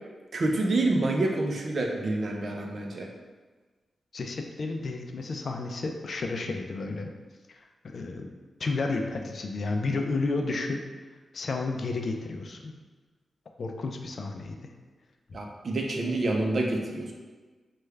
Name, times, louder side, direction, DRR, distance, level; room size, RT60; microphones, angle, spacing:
voice 1, 0.3-3.1 15.3-17.1, right 2 dB, 60° right, 1 dB, 0.5 m, -27 dB
voice 2, 4.1-7.1 7.8-8.3 8.6-10.8 11.3-12.8 13.6-14.7, left 3 dB, 60° left, 3 dB, 0.4 m, -31 dB
3.2 x 2.2 x 3.3 m, 1.3 s
cardioid pair, 60°, 0 cm